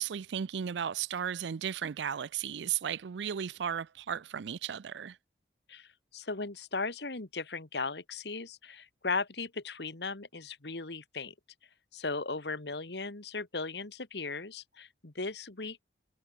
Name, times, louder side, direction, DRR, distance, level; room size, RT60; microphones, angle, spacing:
voice 1, 0.0-5.2, right 8 dB, 75° right, 0.4 m, -35 dB
voice 2, 5.7-11.3 11.9-15.8, left 3 dB, 70° left, 1.8 m, -37 dB
head